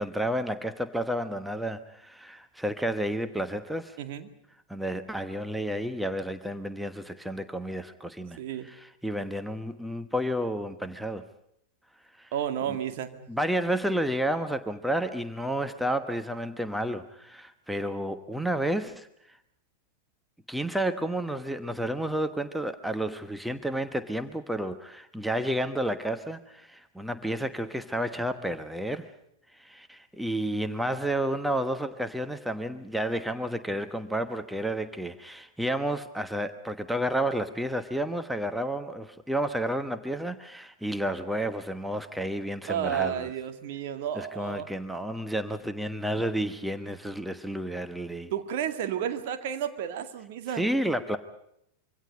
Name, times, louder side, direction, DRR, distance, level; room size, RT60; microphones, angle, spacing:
voice 1, 0.0-4.0 4.7-8.4 8.6-11.2 12.2-12.3 12.7-12.8 13.3-19.4 20.5-29.1 29.5-43.3 44.1-48.3 50.5-51.2, right 1 dB, 5° right, 9 dB, 1.2 m, -31 dB
voice 2, 4.0-4.3 8.4-8.7 12.3-13.3 42.7-44.7 48.3-50.7, right 9 dB, 50° right, 7 dB, 2.2 m, -32 dB
26.0 x 24.5 x 5.3 m, 0.76 s
figure-of-eight pair, 90°, 0 cm